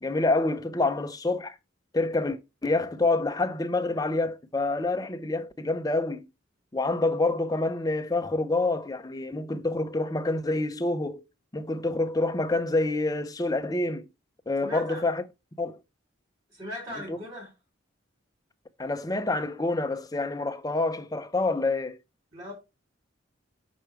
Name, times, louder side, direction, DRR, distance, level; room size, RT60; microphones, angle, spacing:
voice 1, 0.0-1.6 1.9-6.3 6.7-11.2 11.5-14.1 14.5-15.2 15.6-15.8 17.1-17.2 18.8-22.0, left 2 dB, 20° left, 0.5 m, -27 dB
voice 2, 14.6-15.0 16.5-17.5 22.3-22.5, equal, 30° right, 3.2 m, -38 dB
6.3 x 4.5 x 4.5 m
head